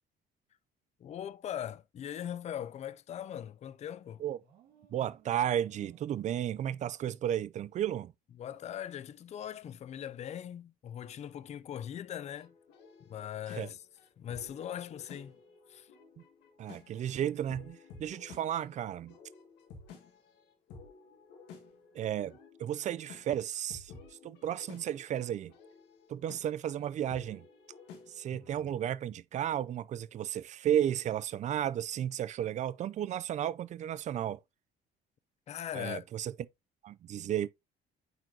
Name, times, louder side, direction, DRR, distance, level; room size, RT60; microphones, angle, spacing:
voice 1, 1.0-4.2 8.4-12.5 13.1-13.8 14.2-15.4 15.7-15.9 28.3-28.4 35.5-36.0, left 10 dB, 40° left, 0.5 m, -40 dB
sound 1, 4.4-7.5, right 6 dB, 70° right, 2.0 m, -64 dB
voice 2, 4.9-8.1 13.6-13.7 16.6-19.1 21.9-23.9 24.2-25.5 26.1-27.4 28.1-34.4 35.7-36.3 36.8-37.5, right 10 dB, 45° right, 0.4 m, -33 dB
sound 2, 12.2-28.6, left 5 dB, 85° left, 1.8 m, -54 dB
9.0 x 3.9 x 2.7 m
cardioid pair, 110°, 17 cm